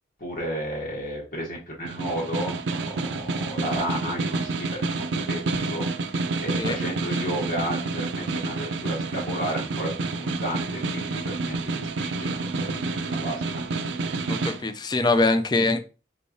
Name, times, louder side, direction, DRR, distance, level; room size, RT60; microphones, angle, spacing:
voice 1, 0.2-13.6, equal, 50° left, 1.1 m, -33 dB
Snare drum, 1.8-14.6, right 3 dB, 85° right, 0.5 m, -29 dB
voice 2, 14.3-15.8, left 3 dB, 25° left, 0.4 m, -23 dB
4.5 x 3.2 x 2.7 m
head